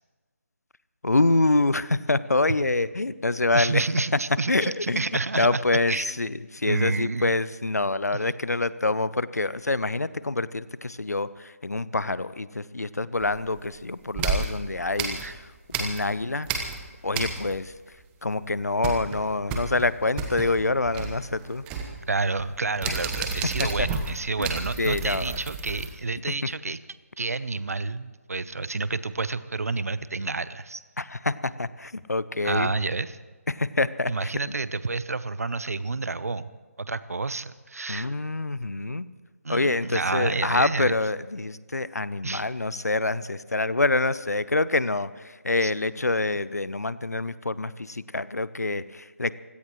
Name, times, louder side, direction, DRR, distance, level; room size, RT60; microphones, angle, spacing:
voice 1, 1.0-3.8 4.5-5.0 5.4-16.5 17.0-17.7 18.2-21.6 22.9-23.0 23.6-23.9 24.4-24.5 24.8-25.4 31.0-32.7 33.5-34.3 37.9-39.1 39.5-49.3, left 2 dB, 85° left, 17 dB, 0.7 m, -26 dB
voice 2, 3.5-5.6 5.9-6.1 6.6-7.4 15.2-15.3 22.1-26.8 27.2-30.8 32.4-33.2 34.1-36.5 36.8-38.1 39.4-40.9 42.2-42.5 45.6-45.7, right 3 dB, 70° right, 15 dB, 0.8 m, -29 dB
sound 1, 13.2-13.7 14.1-16.2 16.4-17.7 18.0-18.1 18.4-25.9, right 4 dB, 15° right, 1.1 m, -32 dB
24.0 x 17.0 x 3.1 m, 1.3 s
figure-of-eight pair, 150°, 9 cm